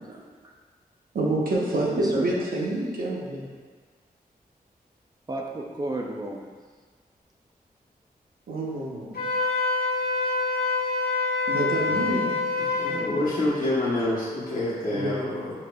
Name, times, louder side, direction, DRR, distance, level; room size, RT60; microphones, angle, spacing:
voice 1, 0.1-0.5 1.9-2.3 5.3-6.5, right 2 dB, 25° right, 0 dB, 0.3 m, -33 dB
voice 2, 1.1-3.4 8.5-9.3 11.5-12.5 14.9-15.2, right 1 dB, 70° right, -4 dB, 0.7 m, -27 dB
Wind instrument woodwind instrument, 9.1-13.1, left 3 dB, 85° left, 0.7 m, -26 dB
voice 3, 12.7-15.7, left 1 dB, 65° left, -11 dB, 1.0 m, -27 dB
4.9 x 3.0 x 2.2 m, 1.5 s
wide cardioid pair, 130°, 16 cm